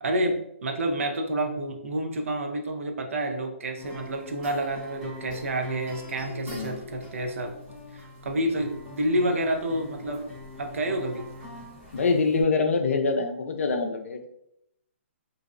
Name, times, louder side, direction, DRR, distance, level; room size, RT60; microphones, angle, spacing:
voice 1, 0.0-7.5 7.9-10.2 10.6-11.2, right 1 dB, 75° right, 4 dB, 0.5 m, -29 dB
sound 1, 3.8-12.4, left 2 dB, 10° right, 0.8 m, -43 dB
voice 2, 11.9-14.3, left 4 dB, 75° left, 6 dB, 0.4 m, -25 dB
2.5 x 2.0 x 2.4 m, 0.78 s
hypercardioid pair, 165°, 7 cm